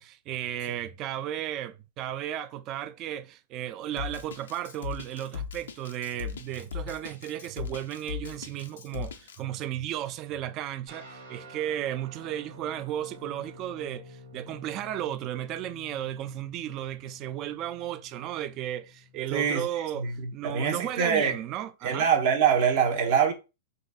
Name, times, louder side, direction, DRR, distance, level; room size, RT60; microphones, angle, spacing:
voice 1, 0.0-22.1, right 12 dB, 35° right, 0.3 m, -34 dB
Drum kit, 4.0-9.4, left 8 dB, 80° left, 0.4 m, -38 dB
sound 1, 10.9-19.8, left 2 dB, 75° right, 1.2 m, -50 dB
voice 2, 19.3-19.6 20.0-21.3 21.8-23.3, right 7 dB, 55° right, 0.9 m, -24 dB
4.0 x 2.6 x 2.3 m
hypercardioid pair, 120°, 0 cm